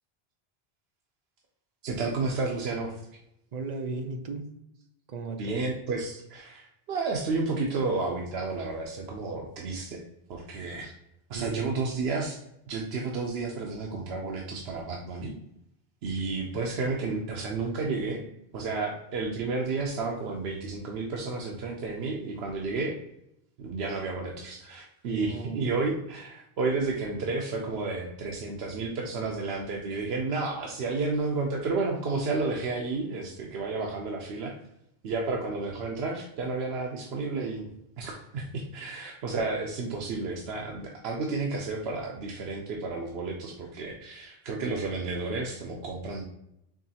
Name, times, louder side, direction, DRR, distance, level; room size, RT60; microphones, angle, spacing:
voice 1, 1.8-3.0 5.4-10.0 10.3-10.9 11.3-12.4 12.7-15.3 16.0-18.2 18.5-23.0 23.6-34.5 35.0-37.7 38.0-46.2, right 3 dB, 80° right, 0 dB, 0.9 m, -31 dB
voice 2, 3.5-4.6 5.1-5.6 11.3-11.6 25.0-25.7, right 3 dB, 55° right, 5 dB, 0.5 m, -36 dB
4.8 x 3.0 x 2.7 m, 0.79 s
omnidirectional pair, 1.0 m